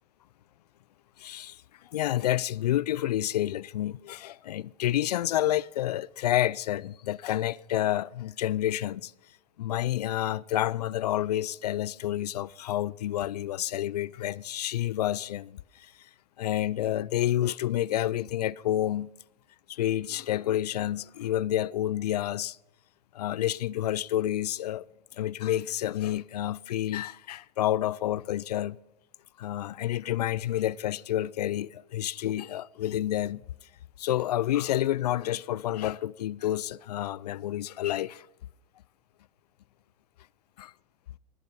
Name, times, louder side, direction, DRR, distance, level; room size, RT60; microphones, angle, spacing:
voice 1, 1.2-9.1 9.6-15.9 16.4-19.1 19.7-22.6 23.1-24.8 25.1-28.8 29.4-33.4 34.0-38.3 40.6-40.7, left 13 dB, 75° left, 0.5 m, -29 dB
20.0 x 7.7 x 5.5 m
hypercardioid pair, 95°, 20 cm